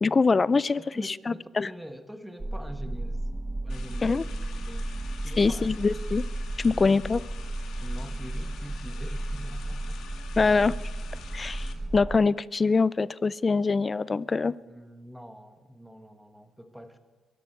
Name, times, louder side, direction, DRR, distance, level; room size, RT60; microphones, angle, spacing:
voice 1, 0.0-1.7 4.0-4.2 5.4-6.2 6.6-7.2 10.4-10.7 11.3-14.5, left 4 dB, 30° left, 21 dB, 0.4 m, -24 dB
voice 2, 0.8-3.2 3.6-4.3 4.6-4.9 5.2-5.7 7.8-10.0 14.7-17.0, equal, 5° right, 8 dB, 1.4 m, -44 dB
sound 1, 2.4-12.2, right 1 dB, 20° right, 0.9 m, -34 dB
sound 2, 3.7-11.7, left 7 dB, 75° left, 1.8 m, -48 dB
23.0 x 12.5 x 4.6 m, 1.3 s
cardioid pair, 90°, 0 cm